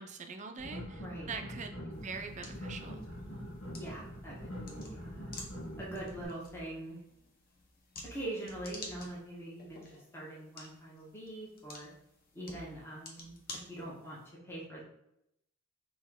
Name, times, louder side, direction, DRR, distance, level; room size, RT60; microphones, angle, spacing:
voice 1, 0.0-3.0, right 5 dB, 35° right, 6 dB, 0.5 m, -43 dB
sound 1, 0.6-6.2, equal, 85° left, 1.4 m, -44 dB
voice 2, 1.0-1.3 3.8-5.4 5.8-7.0 8.0-11.9 12.3-14.8, right 1 dB, 10° left, -5 dB, 1.1 m, -43 dB
sound 2, 1.9-14.3, left 2 dB, 45° left, 0.9 m, -51 dB
4.2 x 3.0 x 3.6 m, 0.80 s
head